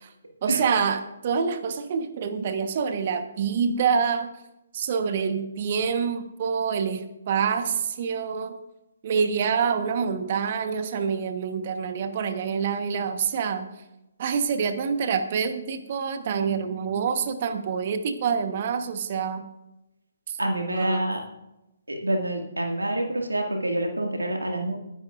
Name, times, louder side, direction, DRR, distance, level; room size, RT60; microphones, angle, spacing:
voice 1, 0.4-4.3 4.7-8.6 9.0-13.7 14.2-19.4 20.7-21.0, right 6 dB, 45° right, 8 dB, 1.2 m, -26 dB
voice 2, 20.4-21.2 21.9-24.8, right 1 dB, 85° right, 2 dB, 2.1 m, -27 dB
21.0 x 10.5 x 2.5 m, 0.93 s
figure-of-eight pair, 135°, 0 cm